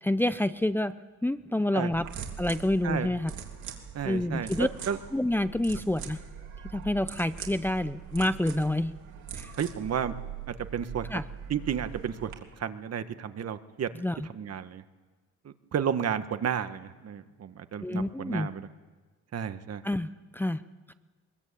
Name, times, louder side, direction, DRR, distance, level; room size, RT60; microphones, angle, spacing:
voice 1, 0.0-0.9 1.2-2.1 2.4-3.3 4.0-4.7 5.1-6.2 6.7-8.9 9.3-9.5 11.1-11.2 13.9-14.3 17.8-18.5 19.8-20.6 20.9-21.0, left 1 dB, 5° left, 11 dB, 0.7 m, -28 dB
sound 1, 1.9-12.3, right 7 dB, 70° right, 3.5 m, -42 dB
voice 2, 3.9-5.0 9.6-10.1 10.7-11.1 11.5-12.3 12.6-13.9 14.3-14.8 15.7-18.6 19.3-19.8, right 8 dB, 55° right, 9 dB, 1.7 m, -32 dB
22.5 x 21.0 x 8.6 m, 1.3 s
cardioid pair, 90°, 30 cm